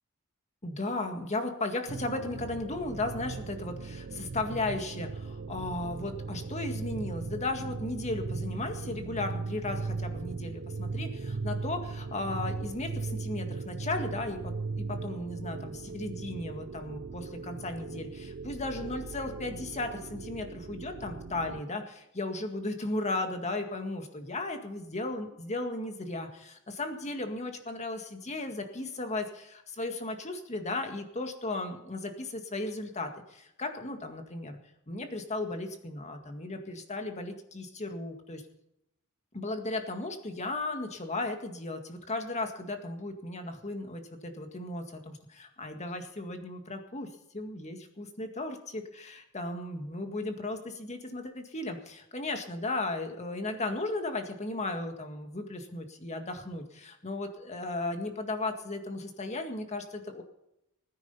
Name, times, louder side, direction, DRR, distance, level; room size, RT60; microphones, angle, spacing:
voice 1, 0.6-34.6 34.9-38.4 39.3-47.1 47.3-60.2, left 2 dB, 30° left, 5 dB, 1.9 m, -35 dB
sound 1, 1.9-21.6, right 4 dB, 55° right, 0.5 m, -38 dB
20.0 x 9.8 x 5.5 m, 0.82 s
head